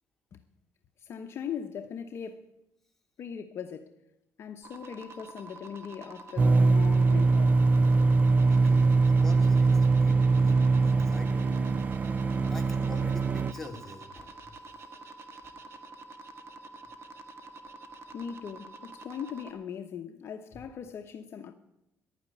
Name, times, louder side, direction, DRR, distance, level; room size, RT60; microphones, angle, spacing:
voice 1, 1.0-2.5 3.2-4.0 4.4-7.6 18.1-21.5, left 7 dB, 50° left, 0.9 m, -40 dB
sound 1, 4.6-19.5, right 2 dB, 55° right, 1.6 m, -47 dB
sound 2, 6.4-13.5, right 3 dB, 30° right, 0.5 m, -22 dB
voice 2, 8.4-11.5 12.5-14.5 15.4-15.6, left 2 dB, 5° left, 2.8 m, -45 dB
11.5 x 9.6 x 9.4 m
cardioid pair, 115°, 5 cm